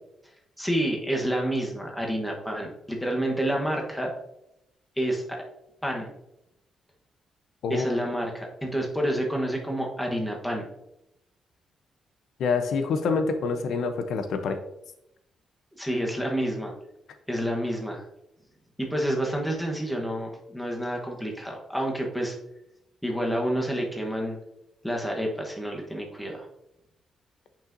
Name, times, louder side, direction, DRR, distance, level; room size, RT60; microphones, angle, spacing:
voice 1, 0.6-4.1 5.0-5.4 5.8-6.1 7.7-10.6 15.8-16.7 17.3-18.0 18.8-22.4 23.0-24.4 24.8-26.5, equal, ahead, 0 dB, 1.0 m, -29 dB
voice 2, 7.6-8.0 12.4-14.6, left 4 dB, 70° left, 8 dB, 0.6 m, -26 dB
8.6 x 5.5 x 2.6 m, 0.84 s
wide cardioid pair, 170°, 0 cm